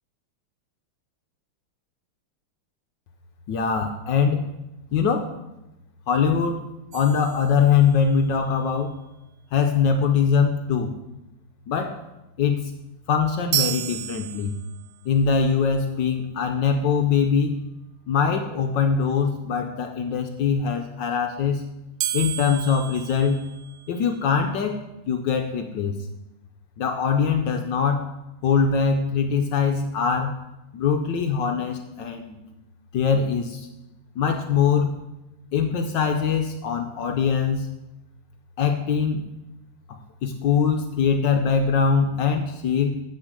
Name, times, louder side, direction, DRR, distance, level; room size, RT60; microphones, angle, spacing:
voice 1, 3.5-4.5 4.9-5.3 6.1-6.6 6.9-9.0 9.5-10.9 11.7-12.0 12.4-12.7 13.1-14.6 15.0-17.6 18.1-21.6 22.1-23.5 23.9-24.8 25.1-25.9 26.8-28.1 28.4-30.3 30.7-32.4 32.9-33.7 34.2-35.0 35.5-37.7 38.6-39.2 39.9-43.0, left 6 dB, 70° left, 5 dB, 1.2 m, -22 dB
sound 1, 6.9-8.2 13.5-15.0 22.0-24.1, right 13 dB, 75° right, 1.3 m, -31 dB
8.2 x 6.1 x 6.6 m, 0.96 s
omnidirectional pair, 2.4 m